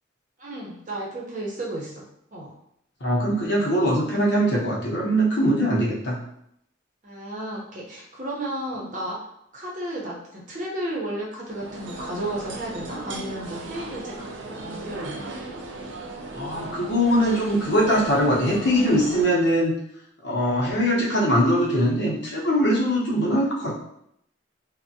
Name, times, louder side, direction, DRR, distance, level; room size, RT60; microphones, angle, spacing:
voice 1, 0.4-2.0 2.3-2.5 7.0-9.2 9.5-15.3, right 1 dB, 40° right, -4 dB, 0.7 m, -33 dB
voice 2, 3.0-6.2 16.4-19.7 20.2-23.8, equal, 65° left, -4 dB, 0.8 m, -22 dB
sound 1, 11.5-19.2, right 2 dB, 75° right, 0.5 m, -37 dB
3.3 x 2.1 x 2.7 m, 0.74 s
head